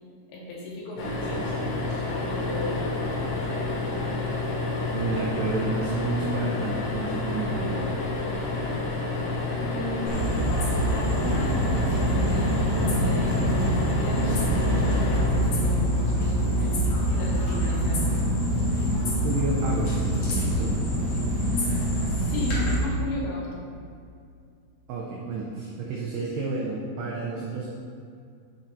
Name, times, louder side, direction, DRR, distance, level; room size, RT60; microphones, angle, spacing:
voice 1, 0.3-1.8 2.1-3.0 3.5-3.8 9.6-10.4 10.9-16.8 17.1-18.2 22.1-23.7, left 1 dB, 85° left, -4 dB, 4.0 m, -36 dB
sound 1, 1.0-16.2 17.9-18.1 18.4-18.5, left 3 dB, 70° left, 2.8 m, -29 dB
voice 2, 4.9-7.9 19.2-20.7 24.9-27.7, right 3 dB, 80° right, -4 dB, 2.3 m, -31 dB
sound 2, 10.1-22.7, equal, 50° left, 2.3 m, -25 dB
9.2 x 7.3 x 2.7 m, 2.3 s
omnidirectional pair, 5.6 m